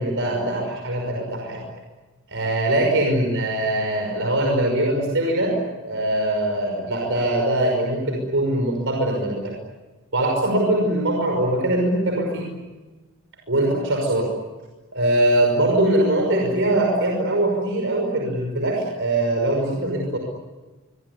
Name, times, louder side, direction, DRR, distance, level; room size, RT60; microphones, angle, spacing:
voice 1, 0.0-1.6 2.3-5.6 5.8-9.5 10.1-12.5 13.5-14.3 14.9-20.2, right 1 dB, 60° right, 1 dB, 5.8 m, -22 dB
25.0 x 24.0 x 9.7 m, 1.2 s
head